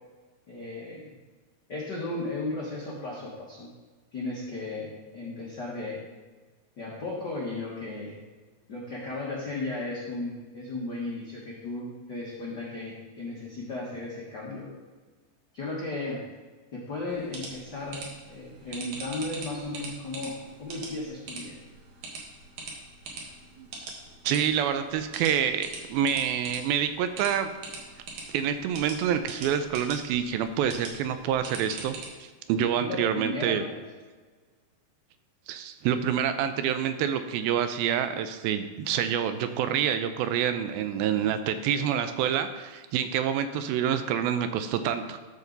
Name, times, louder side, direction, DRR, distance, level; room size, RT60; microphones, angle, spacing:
voice 1, 0.5-1.1 1.7-3.7 4.1-6.0 6.8-8.2 8.7-14.7 15.5-16.2 16.7-21.5 32.8-33.8, left 2 dB, 80° left, -5 dB, 0.9 m, -35 dB
sound 1, 17.1-32.1, right 3 dB, 60° right, 2.7 m, -43 dB
voice 2, 24.3-27.5 28.3-33.6 35.5-45.2, right 9 dB, 80° right, 9 dB, 2.3 m, -27 dB
13.5 x 5.2 x 3.9 m, 1.4 s
omnidirectional pair, 4.4 m